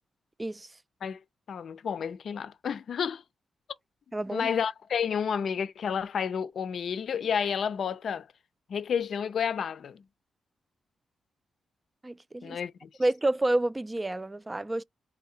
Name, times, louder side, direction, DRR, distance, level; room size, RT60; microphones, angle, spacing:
voice 1, 1.5-3.2 4.3-8.3 8.7-10.0 12.4-12.9, left 7 dB, 70° left, 0.5 m, -30 dB
voice 2, 4.1-4.5 12.0-12.6 13.0-14.8, right 1 dB, 20° right, 0.3 m, -29 dB
4.0 x 2.7 x 2.3 m
supercardioid pair, 50°, 0 cm